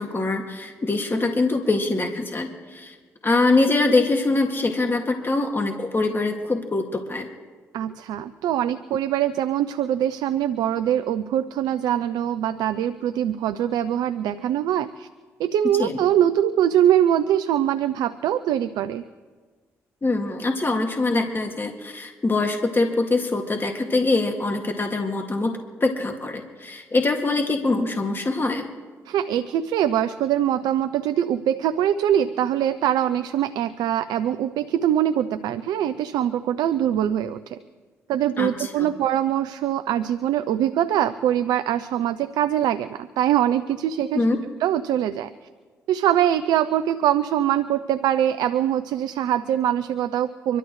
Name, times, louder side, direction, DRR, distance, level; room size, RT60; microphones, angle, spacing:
voice 1, 0.0-2.9 3.2-7.3 15.8-16.0 20.0-28.7 38.4-38.9 44.1-44.4, left 3 dB, 35° left, 3 dB, 2.2 m, -23 dB
voice 2, 7.7-15.1 15.4-19.0 29.1-37.6 38.1-44.2 44.6-45.3 45.9-50.6, right 10 dB, 80° right, 11 dB, 0.5 m, -23 dB
25.5 x 12.5 x 3.2 m, 1.4 s
hypercardioid pair, 45°, 7 cm